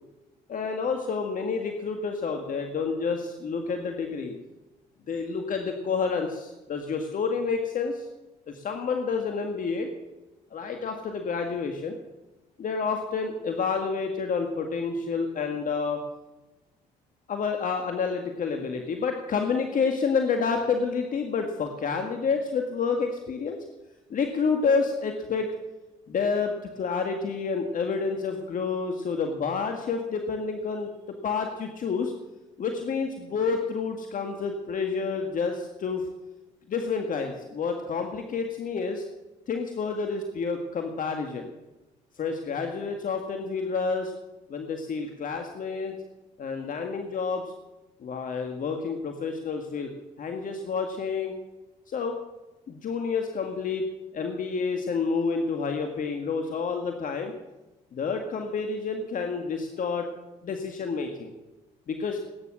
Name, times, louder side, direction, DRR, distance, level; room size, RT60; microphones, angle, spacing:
voice 1, 0.5-4.3 5.1-8.1 8.5-9.9 10.5-11.9 12.6-16.0 17.3-23.6 24.1-25.5 26.1-32.1 32.6-36.1 36.7-39.0 39.5-41.5 42.2-44.1 44.5-45.9 46.4-47.5 48.0-49.9 50.2-51.4 51.9-52.2 52.7-53.9 54.1-57.3 57.9-60.1 60.4-61.3 61.9-62.2, left 5 dB, 55° left, 4 dB, 1.9 m, -29 dB
19.5 x 9.9 x 6.2 m, 1.1 s
supercardioid pair, 65°, 16 cm